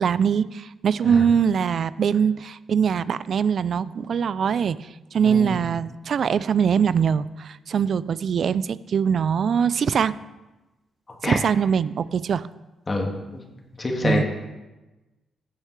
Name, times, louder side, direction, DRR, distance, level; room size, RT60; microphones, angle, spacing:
voice 1, 0.0-4.8 5.1-10.1 11.2-12.5 14.0-14.2, right 7 dB, 65° right, 17 dB, 0.3 m, -22 dB
voice 2, 5.2-5.6 11.2-11.4 12.9-13.4 13.8-14.2, left 2 dB, 30° left, 1 dB, 1.9 m, -26 dB
15.0 x 6.5 x 3.2 m, 1.1 s
cardioid pair, 75°, 0 cm